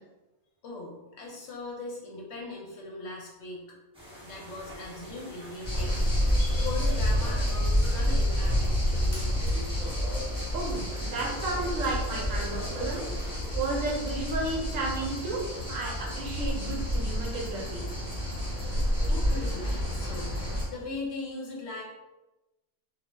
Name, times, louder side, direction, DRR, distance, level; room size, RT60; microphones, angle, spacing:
voice 1, 0.6-3.8 4.2-9.4 19.1-20.4 20.6-21.8, left 2 dB, 60° left, -2 dB, 0.9 m, -39 dB
sound 1, 3.9-13.5, equal, 10° right, 0.3 m, -49 dB
sound 2, 5.6-20.6, equal, 10° left, 0.9 m, -29 dB
voice 2, 10.5-13.0 13.5-17.9, right 2 dB, 70° right, -3 dB, 1.0 m, -33 dB
2.3 x 2.0 x 3.3 m, 1.0 s
omnidirectional pair, 1.4 m